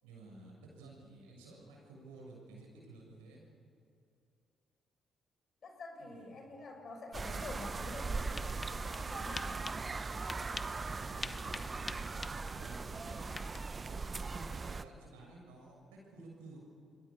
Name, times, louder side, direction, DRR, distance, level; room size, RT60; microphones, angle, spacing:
voice 1, 0.0-3.4 6.0-6.4 10.6-13.3 13.9-16.6, right 2 dB, 80° right, -1 dB, 6.6 m, -54 dB
voice 2, 5.6-9.7, left 2 dB, 50° left, 4 dB, 5.7 m, -48 dB
sound 1, 7.1-14.8, right 4 dB, 35° right, 0.9 m, -39 dB
sound 2, 8.2-13.7, left 3 dB, 30° left, 0.9 m, -47 dB
28.0 x 22.5 x 7.1 m, 2.5 s
hypercardioid pair, 45°, 0 cm